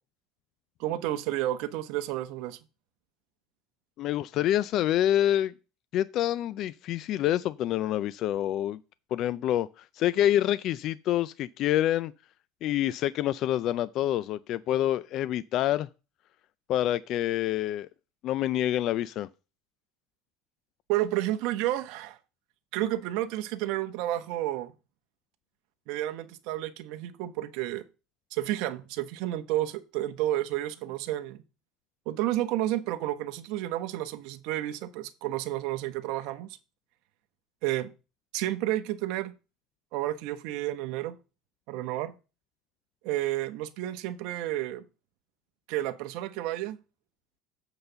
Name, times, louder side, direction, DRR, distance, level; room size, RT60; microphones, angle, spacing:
voice 1, 0.8-2.6 20.9-22.2 22.7-24.7 25.9-27.8 28.3-31.4 32.1-36.6 37.6-37.9 38.3-39.3 39.9-41.1 41.7-42.1 43.0-44.8 45.7-46.8, right 14 dB, 65° right, 0.9 m, -31 dB
voice 2, 4.0-5.5 5.9-8.8 9.1-12.1 12.6-15.9 16.7-17.9 18.2-19.3, left 12 dB, 50° left, 0.3 m, -27 dB
8.0 x 4.0 x 6.8 m
cardioid pair, 135°, 0 cm